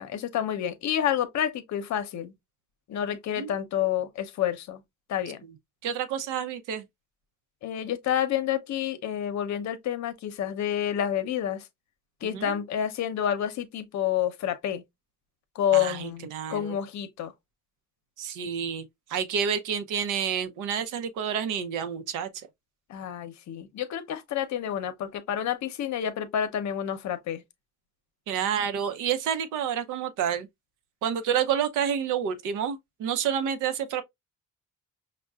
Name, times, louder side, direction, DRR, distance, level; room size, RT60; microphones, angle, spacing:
voice 1, 0.0-2.3 2.9-4.8 5.1-5.4 7.6-11.7 12.2-14.8 15.5-17.3 22.9-27.4, left 10 dB, 65° left, 0.7 m, -29 dB
voice 2, 5.8-6.8 12.2-12.6 15.7-16.8 18.2-22.5 28.3-30.5 31.0-34.0, right 8 dB, 85° right, 0.6 m, -29 dB
5.3 x 2.1 x 2.3 m
cardioid pair, 90°, 30 cm